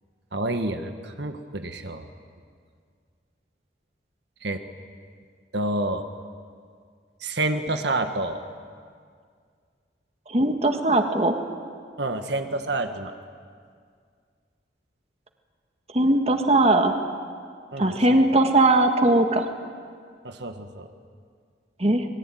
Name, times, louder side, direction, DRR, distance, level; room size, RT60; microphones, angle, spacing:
voice 1, 0.3-2.1 4.4-4.6 5.5-6.0 7.2-8.4 12.0-13.1 17.7-18.2 20.2-20.9, right 2 dB, 70° right, 6 dB, 1.6 m, -28 dB
voice 2, 10.3-11.3 15.9-16.9 17.8-19.4 21.8-22.1, right 2 dB, 35° right, 5 dB, 1.7 m, -19 dB
26.0 x 22.0 x 9.2 m, 2.1 s
head